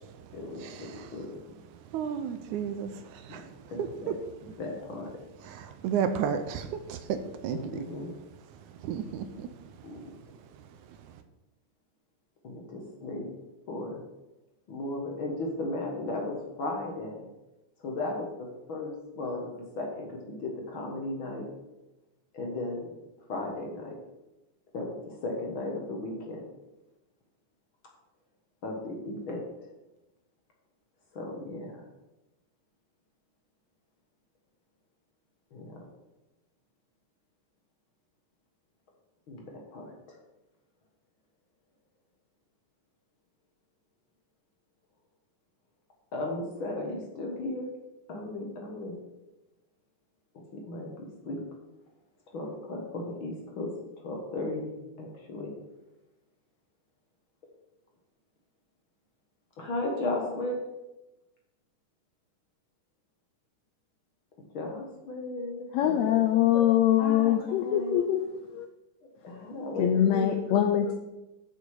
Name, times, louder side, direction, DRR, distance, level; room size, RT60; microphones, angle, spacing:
voice 1, 0.3-1.3 3.3-3.4 3.7-4.1 4.4-5.1 7.5-8.1 9.8-10.0 12.4-13.3 13.7-14.0 14.7-17.3 17.8-21.5 22.3-22.9 23.3-24.0 24.7-26.4 28.6-29.4 31.1-31.8 35.5-35.8 39.3-40.2 46.1-47.7 48.1-49.0 50.5-51.4 52.3-54.7 55.0-55.5 59.6-60.6 64.5-66.1 67.0-67.3 67.6-68.0 69.2-70.3, left 2 dB, 50° left, 0 dB, 1.7 m, -35 dB
voice 2, 1.9-2.9 3.3-3.4 5.5-7.2 7.4-7.6 8.8-9.3, right 8 dB, 80° right, 9 dB, 1.9 m, -31 dB
voice 3, 65.7-68.2 68.5-68.7 69.8-71.0, left 11 dB, 85° left, 7 dB, 1.5 m, -23 dB
6.9 x 6.6 x 5.6 m, 1.0 s
omnidirectional pair, 3.6 m